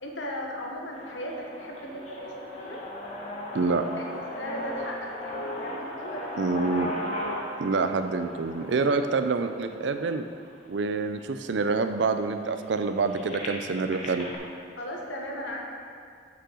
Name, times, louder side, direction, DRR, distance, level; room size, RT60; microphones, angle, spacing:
voice 1, 0.0-2.8 3.9-6.8 14.8-15.6, equal, 70° left, 0 dB, 1.2 m, -37 dB
sound 1, 0.9-10.9 11.5-11.6 11.9-14.4, left 1 dB, 35° left, 1.0 m, -37 dB
voice 2, 3.5-3.9 6.4-6.9 7.6-10.3 10.7-14.3, right 4 dB, 65° right, 8 dB, 0.4 m, -27 dB
6.1 x 5.6 x 6.3 m, 2.2 s
head